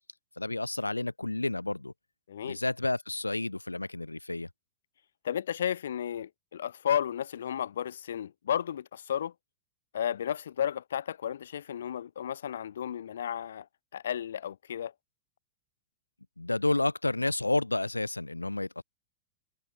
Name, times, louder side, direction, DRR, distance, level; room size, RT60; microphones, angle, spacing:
voice 1, 0.4-1.9 2.4-4.5 16.4-18.8, left 2 dB, 85° left, 2.1 m, -30 dB
voice 2, 2.3-2.6 5.2-9.3 9.9-13.7 13.9-14.9, left 9 dB, 65° left, 1.4 m, -33 dB
figure-of-eight pair, 90°, 0 cm